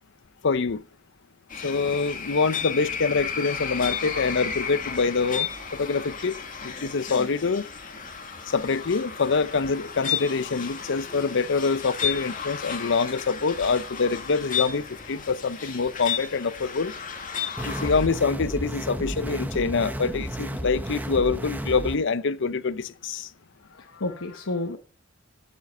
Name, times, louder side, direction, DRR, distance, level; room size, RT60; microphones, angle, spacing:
voice 1, 0.4-0.8 1.6-7.7 8.5-16.9 17.6-23.3, left 4 dB, 65° left, 0.7 m, -25 dB
sound 1, 1.5-18.1, left 7 dB, 45° left, 2.0 m, -33 dB
voice 2, 17.6-17.9 18.2-18.3 23.6-24.8, left 2 dB, 80° left, 1.1 m, -33 dB
sound 2, 17.6-22.0, right 1 dB, 10° right, 0.9 m, -32 dB
12.0 x 7.3 x 5.5 m
head